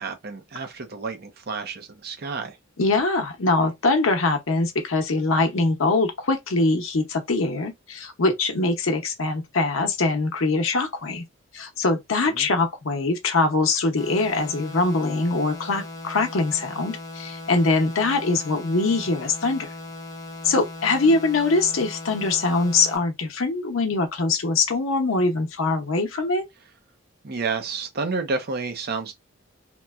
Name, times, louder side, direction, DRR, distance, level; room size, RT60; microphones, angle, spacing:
voice 1, 0.0-2.6 12.3-12.5 21.1-21.2 27.2-29.2, right 4 dB, 50° right, 0.6 m, -30 dB
voice 2, 2.8-11.2 11.5-19.7 20.4-26.4, left 3 dB, 75° left, 0.7 m, -23 dB
sound 1, 14.0-23.0, left 2 dB, 15° left, 0.6 m, -38 dB
3.0 x 2.1 x 2.3 m
head